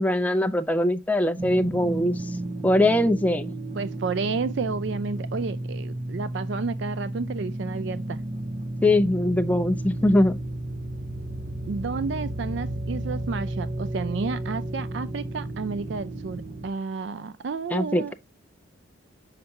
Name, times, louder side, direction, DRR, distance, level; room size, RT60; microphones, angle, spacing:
voice 1, 0.0-2.2 2.6-3.5 8.8-10.4 17.7-18.1, left 1 dB, 10° left, 0.4 m, -22 dB
sound 1, 1.4-16.7, right 1 dB, 35° right, 0.7 m, -32 dB
voice 2, 3.8-8.2 11.7-18.1, right 4 dB, 60° right, 0.4 m, -31 dB
6.5 x 5.8 x 2.7 m
head